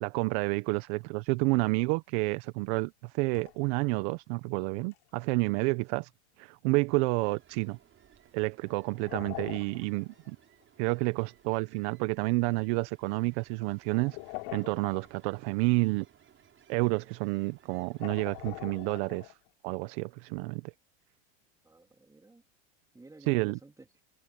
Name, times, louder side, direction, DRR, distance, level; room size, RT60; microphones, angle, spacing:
voice 1, 0.0-6.1 6.4-7.8 8.3-10.4 10.8-14.2 14.5-16.0 16.7-19.4 19.6-20.7 23.3-23.6, right 25 dB, 60° right, 1.1 m, -29 dB
sound 1, 1.8-1.9 3.3-4.1 4.8-5.0 8.7-10.3 10.6-10.7 11.2-11.3 13.9-15.4 17.0-17.2 17.9-19.5, left 29 dB, 60° left, 3.4 m, -43 dB
Ocean, 6.7-19.4, right 9 dB, 30° right, 7.3 m, -62 dB
voice 2, 21.6-22.4 22.9-23.9, right 2 dB, 10° right, 3.2 m, -54 dB
hypercardioid pair, 110°, 38 cm